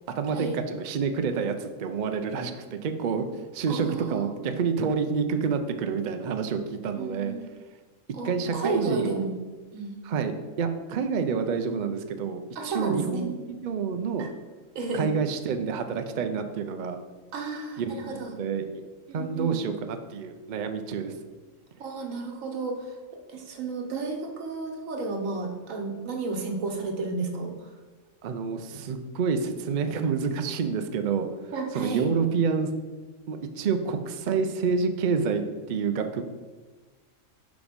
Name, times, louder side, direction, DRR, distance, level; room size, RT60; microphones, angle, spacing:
voice 1, 0.1-7.3 8.2-9.2 10.0-13.3 13.6-14.3 14.9-17.0 17.8-18.7 19.1-21.1 28.2-31.3 31.7-32.7 33.3-36.2, right 5 dB, 60° right, 7 dB, 0.5 m, -28 dB
voice 2, 3.7-4.2 7.0-7.4 8.1-9.3 9.7-10.0 12.5-13.2 14.2-14.3 14.7-15.1 17.3-18.3 19.1-19.7 21.8-22.9 23.3-27.7 31.5-32.1, right 3 dB, 80° right, 3 dB, 1.3 m, -32 dB
5.1 x 5.0 x 5.1 m, 1.3 s
omnidirectional pair, 1.4 m